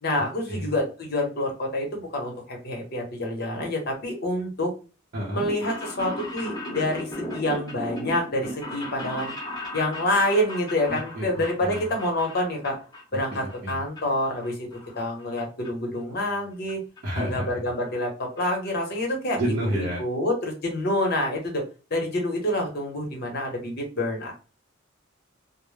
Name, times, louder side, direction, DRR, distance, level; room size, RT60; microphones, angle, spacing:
voice 1, 0.0-4.7 5.3-9.3 9.7-12.8 13.1-14.6 15.0-16.8 17.1-21.6 21.9-24.3, left 1 dB, 55° left, 1 dB, 0.9 m, -27 dB
voice 2, 5.1-5.5 10.9-11.9 13.3-13.8 17.0-17.6 19.4-20.0, equal, 45° right, -6 dB, 0.6 m, -30 dB
sound 1, 5.3-13.0 13.3-14.0 14.3-15.4 15.6-15.7 16.7-16.8 17.0-17.1 17.3-17.4 17.7-18.0 18.4-18.5 18.6-18.7, left 1 dB, 20° left, 0.8 m, -36 dB
2.1 x 2.0 x 3.1 m, 0.34 s
head